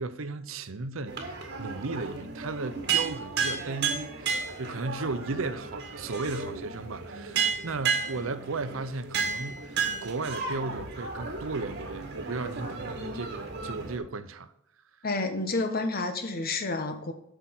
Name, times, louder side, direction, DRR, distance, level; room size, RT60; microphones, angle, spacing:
voice 1, 0.0-14.5, right 3 dB, 80° right, 0.7 m, -35 dB
sound 1, 1.1-14.0, right 5 dB, 55° right, 1.8 m, -33 dB
voice 2, 15.0-17.1, left 3 dB, 50° left, 1.2 m, -29 dB
8.0 x 5.8 x 6.0 m
head